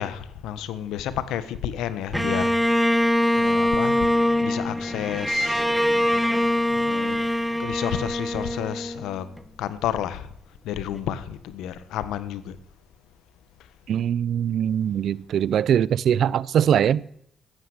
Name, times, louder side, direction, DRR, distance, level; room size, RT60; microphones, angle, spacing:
voice 1, 0.0-2.8 3.3-4.1 4.4-5.7 6.7-7.2 7.6-9.3 9.6-10.3 10.6-12.5, left 10 dB, 90° left, 1.3 m, -31 dB
Bowed string instrument, 2.1-9.4, left 1 dB, ahead, 1.2 m, -23 dB
voice 2, 13.9-17.2, right 9 dB, 65° right, 0.6 m, -22 dB
14.5 x 9.3 x 9.5 m
cardioid pair, 90°, 0 cm